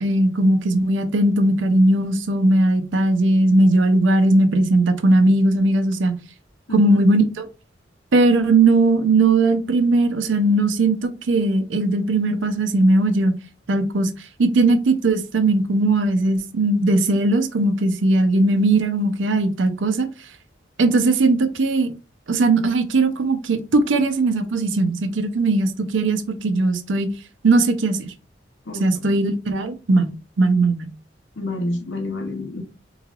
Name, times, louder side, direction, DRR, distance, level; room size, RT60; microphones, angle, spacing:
voice 1, 0.0-6.2 6.7-7.5 8.1-13.3 13.7-14.1 14.4-20.1 20.8-21.9 22.3-27.1 27.4-28.1 28.8-30.1 30.4-30.9, right 2 dB, 85° right, 0.6 m, -18 dB
voice 2, 31.4-32.6, left 2 dB, 70° left, 0.8 m, -28 dB
3.8 x 3.1 x 2.4 m
head